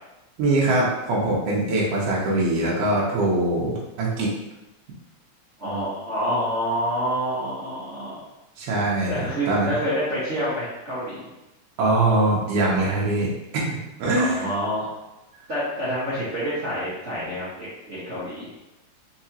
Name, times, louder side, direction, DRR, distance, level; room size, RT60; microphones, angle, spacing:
voice 1, 0.4-4.3 8.6-9.7 11.8-14.5, right 2 dB, 70° right, -4 dB, 1.5 m, -23 dB
voice 2, 5.6-8.2 9.1-11.3 14.1-14.9 15.5-18.5, equal, 55° right, -13 dB, 0.8 m, -27 dB
4.8 x 3.4 x 2.8 m, 0.99 s
omnidirectional pair, 3.5 m